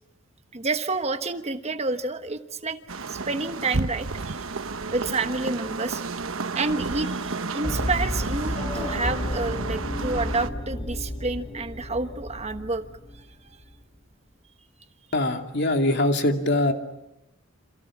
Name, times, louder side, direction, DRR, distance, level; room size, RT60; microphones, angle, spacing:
voice 1, 0.5-2.8 3.1-4.6 4.9-6.0 6.5-12.8 13.4-13.6, right 3 dB, 30° right, 9 dB, 1.2 m, -29 dB
sound 1, 2.9-10.5, right 3 dB, 80° right, 1.1 m, -32 dB
sound 2, 7.6-13.6, left 1 dB, 30° left, 7.7 m, -32 dB
voice 2, 15.1-16.7, left 1 dB, 55° left, 5 dB, 2.7 m, -22 dB
29.0 x 27.0 x 7.3 m, 0.87 s
head